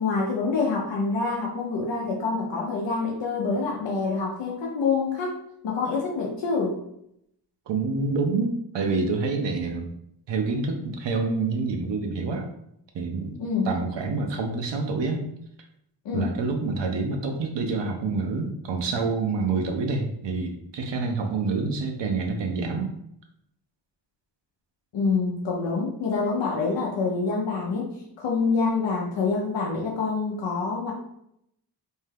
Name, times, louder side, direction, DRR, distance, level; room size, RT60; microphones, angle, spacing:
voice 1, 0.0-5.4 5.6-6.7 13.4-13.7 16.0-16.3 24.9-30.9, left 4 dB, 90° left, -3 dB, 0.6 m, -26 dB
voice 2, 7.7-9.9 10.3-12.5 12.9-13.4 13.7-15.3 16.1-22.9, right 4 dB, 80° right, 3 dB, 0.6 m, -27 dB
2.7 x 2.2 x 3.2 m, 0.75 s
wide cardioid pair, 90°, 42 cm